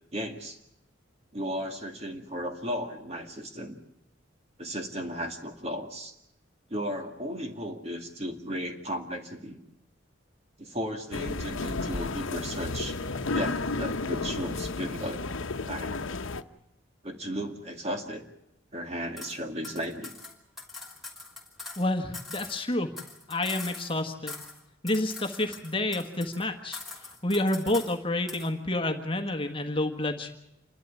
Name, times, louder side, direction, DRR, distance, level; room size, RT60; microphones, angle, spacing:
voice 1, 0.1-0.6 1.3-3.8 4.6-6.1 6.7-9.6 10.6-12.9 13.3-15.2 15.7-16.0 17.0-18.3 18.7-20.1, equal, 30° right, 4 dB, 2.2 m, -35 dB
sound 1, 11.1-16.4, left 3 dB, 90° left, 1.0 m, -32 dB
sound 2, 19.2-19.4 19.6-21.9 22.1-24.0 24.3-24.6 24.9-26.4 26.7-28.0 28.3-28.5, left 3 dB, ahead, 3.3 m, -42 dB
voice 2, 21.8-22.9 23.3-24.4 24.8-26.8 27.2-30.3, left 1 dB, 25° left, 4 dB, 1.5 m, -29 dB
28.0 x 12.5 x 9.7 m, 0.83 s
head